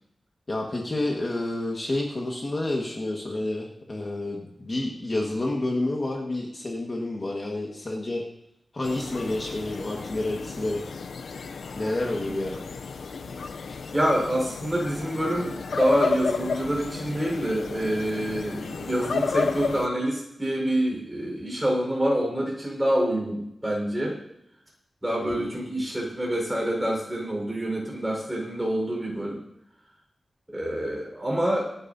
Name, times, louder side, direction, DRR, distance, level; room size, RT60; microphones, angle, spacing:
voice 1, 0.5-8.2 8.7-10.8 11.7-12.6 13.7-13.8 25.2-25.6, left 2 dB, 30° left, -1 dB, 1.6 m, -29 dB
sound 1, 8.8-19.9, left 5 dB, 80° left, 0.5 m, -32 dB
voice 2, 13.9-24.2 25.0-29.4 30.5-31.6, right 1 dB, 5° right, -2 dB, 4.6 m, -26 dB
26.0 x 9.8 x 2.8 m, 0.80 s
wide cardioid pair, 155°, 0 cm